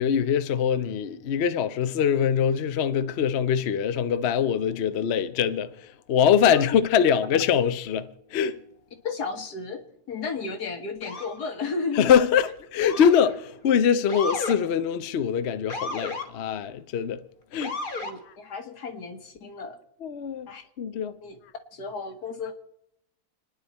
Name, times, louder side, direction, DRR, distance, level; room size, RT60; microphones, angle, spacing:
voice 1, 0.0-8.6 11.9-17.2 17.5-17.8 20.0-20.5 20.8-21.1, left 8 dB, 55° left, 0.8 m, -23 dB
voice 2, 9.0-9.8 10.1-12.2 18.0-19.8 20.5-20.6 21.2-21.4 21.7-22.5, left 5 dB, 85° left, 2.1 m, -33 dB
Motor vehicle (road) / Siren, 11.0-11.4 12.8-13.3 14.1-14.6 15.7-16.3 17.6-18.1, left 3 dB, 35° left, 1.5 m, -33 dB
29.0 x 10.0 x 4.2 m
omnidirectional pair, 1.7 m